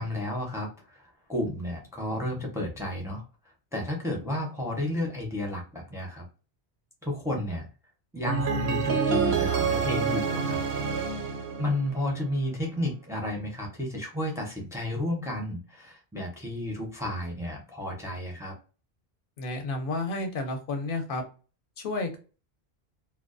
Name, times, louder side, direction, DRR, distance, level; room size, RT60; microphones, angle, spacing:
voice 1, 0.0-3.2 3.7-6.2 7.0-7.7 8.1-10.6 11.6-18.5, left 1 dB, 5° right, 0 dB, 0.5 m, -32 dB
sound 1, 8.3-12.3, right 6 dB, 75° right, 0.8 m, -27 dB
voice 2, 19.4-21.2 21.8-22.2, left 2 dB, 60° left, 4 dB, 0.8 m, -31 dB
2.2 x 2.2 x 2.4 m, 0.34 s
omnidirectional pair, 1.1 m